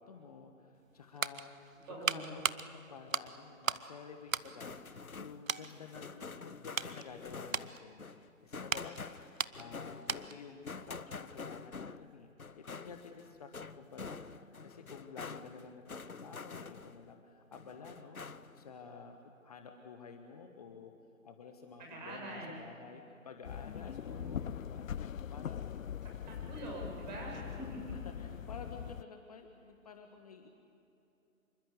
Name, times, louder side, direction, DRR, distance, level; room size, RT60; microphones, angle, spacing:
voice 1, 0.0-9.1 9.6-20.9 21.2-25.7 27.3-30.5, left 5 dB, 30° left, 5 dB, 1.2 m, -51 dB
sound 1, 0.8-3.9 4.2-5.2 5.5-5.7 6.3-10.5 10.8-11.0, right 6 dB, 70° right, 0.9 m, -38 dB
voice 2, 1.9-2.3 21.9-22.6 24.1-24.4 26.3-27.8, right 1 dB, 30° right, -1 dB, 7.3 m, -44 dB
sound 2, 4.4-17.1 17.5-18.7, left 4 dB, 85° left, 0.9 m, -47 dB
sound 3, 23.4-29.0, left 9 dB, 70° left, 0.5 m, -42 dB
26.5 x 24.0 x 8.0 m, 2.9 s
figure-of-eight pair, 140°, 41 cm